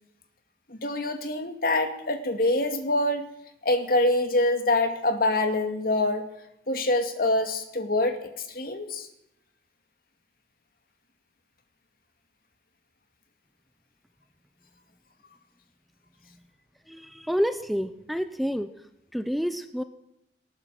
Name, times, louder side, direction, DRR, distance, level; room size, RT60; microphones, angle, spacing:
voice 1, 0.7-3.3 3.6-6.3 6.7-9.1, left 2 dB, 55° left, 7 dB, 2.4 m, -25 dB
voice 2, 16.9-18.7 19.1-19.8, equal, ahead, 10 dB, 0.7 m, -28 dB
19.0 x 19.0 x 7.7 m, 0.84 s
head